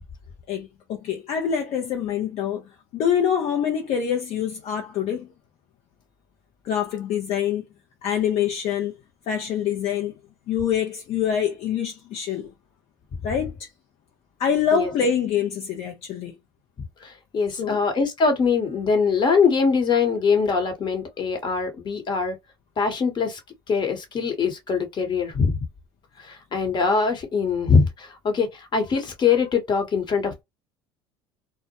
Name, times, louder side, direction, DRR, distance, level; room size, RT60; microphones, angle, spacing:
voice 1, 0.5-2.6 2.9-5.3 6.6-7.6 8.0-9.0 9.3-10.2 10.5-12.5 13.2-13.7 14.4-16.4 17.5-17.8, left 8 dB, 55° left, 0.6 m, -25 dB
voice 2, 17.0-22.4 22.8-23.4 23.7-25.5 26.2-30.4, left 5 dB, 35° left, 1.1 m, -22 dB
2.1 x 2.1 x 2.8 m
hypercardioid pair, 85°, 13 cm